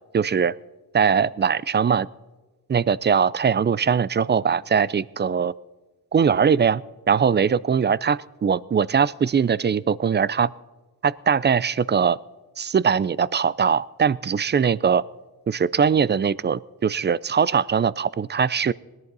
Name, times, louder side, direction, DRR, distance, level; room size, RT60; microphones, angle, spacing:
voice 1, 0.1-0.5 0.9-2.1 2.7-5.5 6.1-6.8 7.1-10.5 11.0-12.2 12.6-15.0 15.5-18.7, right 6 dB, 30° right, 0.3 m, -21 dB
18.5 x 10.5 x 5.4 m
cardioid pair, 80°, 38 cm